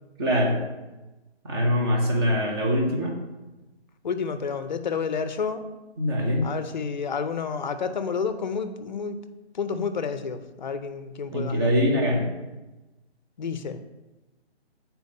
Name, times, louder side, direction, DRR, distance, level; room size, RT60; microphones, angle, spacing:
voice 1, 0.2-0.6 1.4-3.1 6.0-6.5 11.3-12.3, equal, 25° right, 0 dB, 1.0 m, -23 dB
voice 2, 4.0-5.7 6.4-9.2 9.5-11.7 13.4-13.8, left 5 dB, 45° left, 10 dB, 0.6 m, -30 dB
6.9 x 4.5 x 5.4 m, 1.1 s
hypercardioid pair, 160°, 33 cm